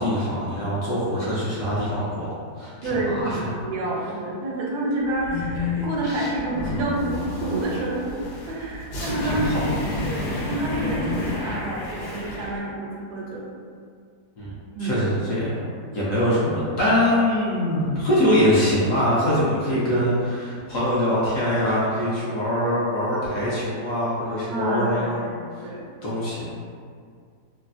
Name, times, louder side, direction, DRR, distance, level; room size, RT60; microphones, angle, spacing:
voice 1, 0.0-2.3 2.6-3.5 9.2-9.5 14.4-15.6 15.9-25.3 25.6-25.7 26.0-26.5, equal, 65° left, -9 dB, 0.9 m, -23 dB
voice 2, 2.8-9.7 10.0-13.4 14.7-15.0 24.5-25.3 25.6-25.9, right 2 dB, 80° right, -4 dB, 1.2 m, -28 dB
sound 1, 5.1-12.5, left 2 dB, 85° left, 1.3 m, -30 dB
3.1 x 2.0 x 2.4 m, 2.2 s
omnidirectional pair, 1.7 m